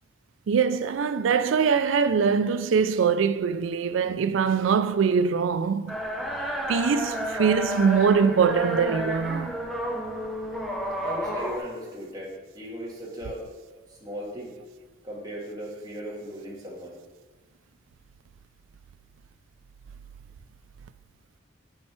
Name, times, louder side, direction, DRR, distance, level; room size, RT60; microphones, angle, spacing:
voice 1, 0.5-6.0 6.7-9.6, right 6 dB, 75° right, 0.4 m, -23 dB
sound 1, 5.9-11.6, equal, ahead, 0.7 m, -31 dB
voice 2, 11.0-13.4 14.0-14.5 15.0-17.0, equal, 20° right, 1.8 m, -37 dB
8.9 x 5.5 x 4.4 m
head